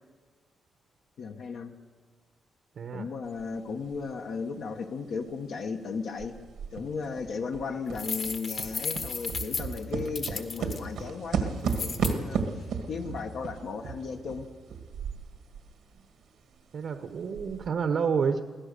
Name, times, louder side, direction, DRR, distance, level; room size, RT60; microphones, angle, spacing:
voice 1, 1.2-1.7 2.9-6.4 6.7-12.4 12.9-14.5, left 5 dB, 65° left, 3 dB, 1.3 m, -35 dB
voice 2, 2.8-3.1 16.7-18.4, right 6 dB, 55° right, 7 dB, 1.0 m, -29 dB
sound 1, 3.4-3.5 3.9-5.8 6.2-15.7 16.0-16.1 16.6-16.7 17.2-17.7, right 5 dB, 85° right, 1.9 m, -34 dB
sound 2, 7.9-10.8 11.7-12.1, left 5 dB, 45° left, 1.6 m, -34 dB
23.0 x 16.5 x 6.8 m, 1.4 s
wide cardioid pair, 150°, 0 cm